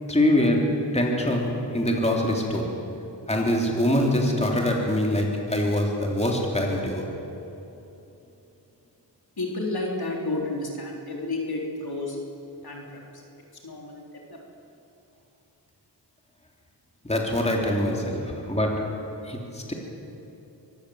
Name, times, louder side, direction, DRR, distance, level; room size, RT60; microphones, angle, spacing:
voice 1, 0.1-2.8 3.3-7.1 17.0-19.7, left 1 dB, 15° left, 0 dB, 3.3 m, -24 dB
voice 2, 9.4-12.2 12.6-13.0 13.6-14.0, left 2 dB, 55° left, -1 dB, 4.0 m, -31 dB
24.5 x 15.0 x 8.0 m, 3.0 s
cardioid pair, 65°, 44 cm